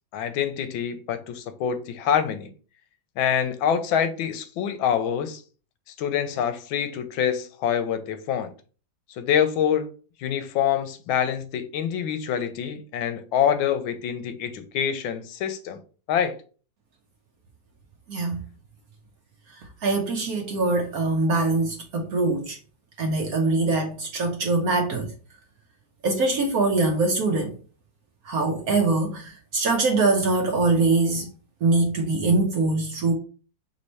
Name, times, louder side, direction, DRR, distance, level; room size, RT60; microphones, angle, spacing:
voice 1, 0.1-2.5 3.2-5.4 5.9-8.5 9.2-9.9 10.2-15.8 16.1-16.4, left 8 dB, 90° left, 1.4 m, -25 dB
voice 2, 18.1-18.4 19.5-22.6 23.0-25.1 26.0-27.6 28.2-31.3 31.6-33.1, right 3 dB, 65° right, 0.9 m, -23 dB
3.4 x 3.2 x 4.0 m
omnidirectional pair, 2.1 m